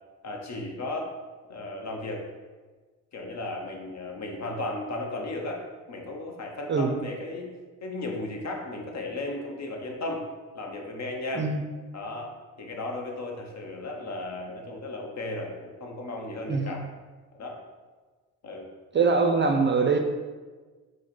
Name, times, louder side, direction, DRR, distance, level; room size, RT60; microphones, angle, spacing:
voice 1, 0.2-1.1 1.5-2.2 3.1-7.5 7.8-10.2 10.5-11.5 11.9-16.8 17.3-17.6 18.4-18.7, left 2 dB, 50° left, 1 dB, 0.9 m, -35 dB
voice 2, 18.9-20.0, right 4 dB, 30° right, 4 dB, 0.5 m, -23 dB
4.6 x 2.1 x 4.2 m, 1.4 s
supercardioid pair, 60°, 35 cm